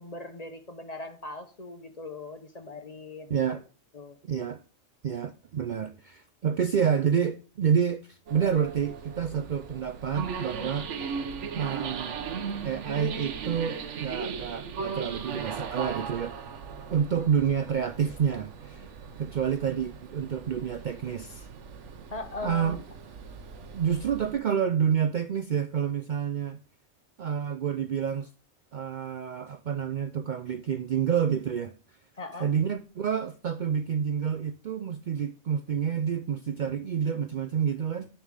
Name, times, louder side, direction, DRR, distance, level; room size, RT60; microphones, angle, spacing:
voice 1, 0.0-3.6 3.9-4.2 22.1-22.8 32.2-32.5, left 2 dB, 35° left, 1.1 m, -40 dB
voice 2, 3.3-3.6 4.2-4.6 5.0-10.9 11.5-12.2 12.6-16.4 16.9-18.9 19.2-21.5 22.4-22.8 23.7-26.6 27.2-28.3 28.7-31.7 32.4-38.1, right 8 dB, 60° right, 0.5 m, -28 dB
sound 1, 8.3-24.4, right 6 dB, 80° right, 1.2 m, -38 dB
10.5 x 3.6 x 6.3 m
omnidirectional pair, 1.2 m